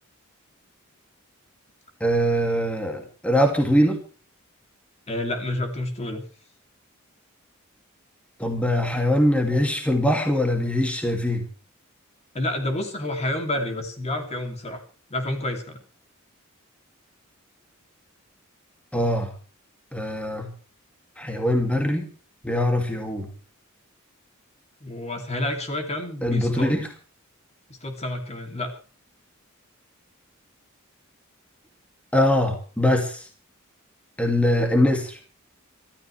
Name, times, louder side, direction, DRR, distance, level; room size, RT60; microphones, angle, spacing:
voice 1, 2.0-4.0 8.4-11.4 18.9-19.3 19.9-20.5 21.2-22.1 22.4-23.3 26.2-26.9 32.1-33.2 34.2-35.2, left 1 dB, 5° left, 3 dB, 2.4 m, -22 dB
voice 2, 5.1-6.2 12.3-14.8 15.1-15.8 24.8-26.8 27.8-28.7, left 1 dB, 30° left, 5 dB, 2.8 m, -29 dB
25.5 x 13.5 x 3.3 m, 0.37 s
head